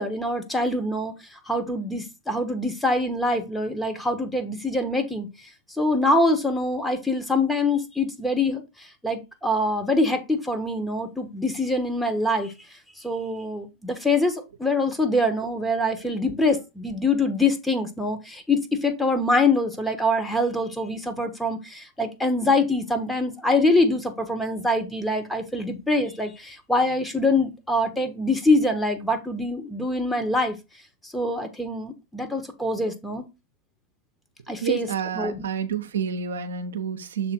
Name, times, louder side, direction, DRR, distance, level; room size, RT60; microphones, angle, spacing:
voice 1, 0.0-5.3 5.8-8.6 9.0-12.5 13.0-30.6 31.0-33.3 34.5-35.5, left 2 dB, 5° left, 1.2 m, -24 dB
voice 2, 34.6-37.3, right 7 dB, 75° right, 0.8 m, -29 dB
6.7 x 3.4 x 4.3 m
hypercardioid pair, 95°, 0 cm